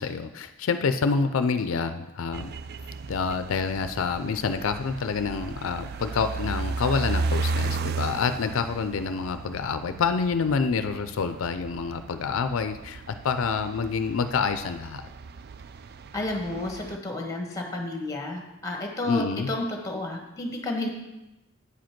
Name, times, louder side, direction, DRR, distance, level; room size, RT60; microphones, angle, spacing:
voice 1, 0.0-2.5 3.1-15.0 19.1-19.5, left 5 dB, 75° left, 9 dB, 0.4 m, -27 dB
sound 1, 2.3-17.0, right 3 dB, 50° right, 0.3 m, -35 dB
voice 2, 16.1-20.9, left 2 dB, 15° left, 2 dB, 1.3 m, -31 dB
8.3 x 5.1 x 5.8 m, 1.0 s
head